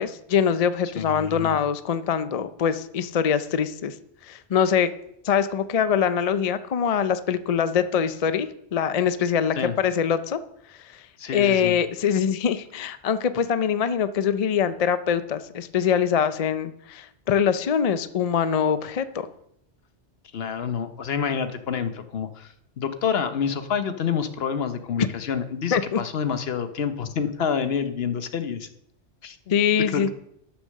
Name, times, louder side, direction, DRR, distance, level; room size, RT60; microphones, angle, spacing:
voice 1, 0.0-3.9 4.3-4.9 5.2-10.4 10.9-11.0 11.3-19.3 25.7-26.0 29.5-30.1, left 7 dB, 45° left, 12 dB, 0.5 m, -23 dB
voice 2, 0.9-1.6 9.6-9.8 11.2-11.8 20.3-28.7 29.2-29.4 29.9-30.1, left 7 dB, 65° left, 10 dB, 1.0 m, -28 dB
11.5 x 6.4 x 6.4 m, 0.75 s
omnidirectional pair, 1.1 m